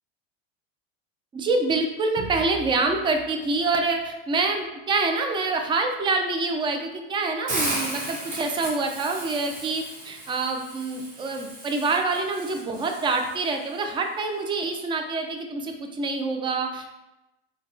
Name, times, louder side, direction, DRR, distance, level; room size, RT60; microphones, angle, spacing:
voice 1, 1.3-16.9, right 3 dB, 15° right, 4 dB, 0.3 m, -26 dB
Hiss, 7.5-13.5, right 1 dB, 60° right, 1.4 m, -34 dB
3.8 x 2.2 x 2.6 m, 0.97 s
hypercardioid pair, 100°, 31 cm